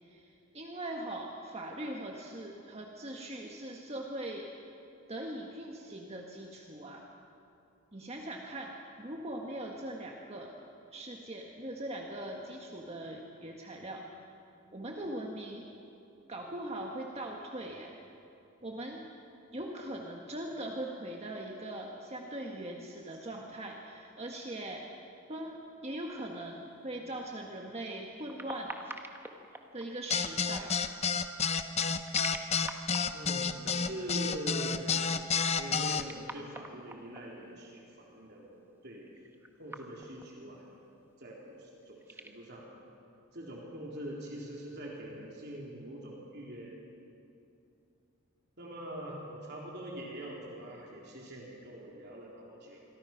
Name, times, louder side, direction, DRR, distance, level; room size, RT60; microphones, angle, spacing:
voice 1, 0.1-4.5 5.1-7.1 7.9-10.5 10.9-14.0 14.7-15.6 16.3-18.0 18.6-19.0 19.5-24.8 25.3-28.7 29.7-30.8, right 1 dB, 30° right, 0 dB, 1.6 m, -41 dB
sound 1, 25.9-26.5 28.0-30.0 31.5-33.7 35.6-37.2 39.0-40.4 40.6-40.7 41.8-42.3, right 2 dB, 10° right, 1.3 m, -46 dB
sound 2, 30.1-36.0, left 6 dB, 30° left, 0.8 m, -30 dB
voice 2, 33.1-35.1 35.6-39.1 39.6-40.7 41.2-42.7 43.3-46.8 48.6-52.9, right 1 dB, 50° right, -3 dB, 3.7 m, -43 dB
27.5 x 23.5 x 6.0 m, 2.7 s
head